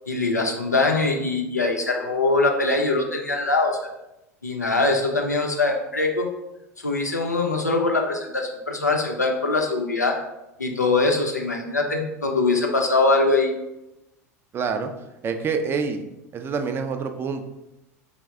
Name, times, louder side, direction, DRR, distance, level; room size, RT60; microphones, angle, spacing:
voice 1, 0.1-3.8 4.4-6.3 6.8-10.2 10.6-13.5, left 3 dB, 90° left, 1 dB, 0.6 m, -22 dB
voice 2, 14.5-14.9 15.2-16.1 16.3-17.4, right 5 dB, 25° right, 7 dB, 0.4 m, -26 dB
4.7 x 2.1 x 3.4 m, 0.92 s
figure-of-eight pair, 80°, 9 cm